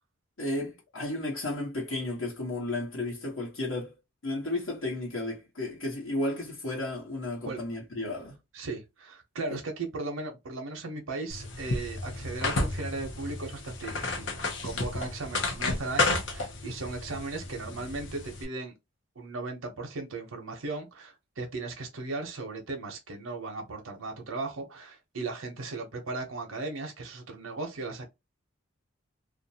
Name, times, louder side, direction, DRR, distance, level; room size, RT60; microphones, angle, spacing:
voice 1, 0.4-3.9 4.2-8.4, left 2 dB, 85° left, 1.0 m, -33 dB
voice 2, 8.5-18.7 19.2-28.0, right 3 dB, 85° right, 0.7 m, -37 dB
sound 1, 11.3-18.4, left 3 dB, 60° left, 0.6 m, -32 dB
2.5 x 2.1 x 2.7 m
head